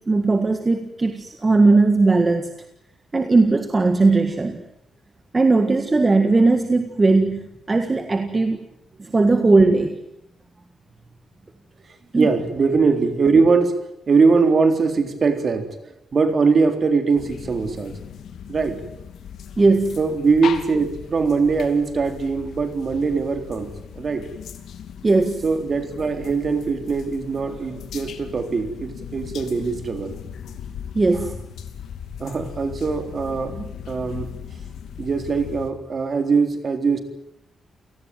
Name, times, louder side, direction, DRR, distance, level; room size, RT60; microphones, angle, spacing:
voice 1, 0.0-2.5 3.1-4.6 5.3-8.6 9.0-10.0 12.1-12.3 19.6-20.0 25.0-25.4 30.9-31.4, right 3 dB, 20° right, 7 dB, 1.8 m, -18 dB
voice 2, 12.2-13.7 14.1-15.7 16.1-18.0 18.5-18.8 20.0-24.3 25.4-30.2 31.1-31.2 32.2-34.3 35.0-37.0, right 4 dB, 40° right, 7 dB, 3.8 m, -21 dB
sound 1, 17.2-35.7, left 8 dB, 85° left, 2.8 m, -38 dB
29.0 x 18.5 x 9.2 m, 0.81 s
wide cardioid pair, 150°, 0 cm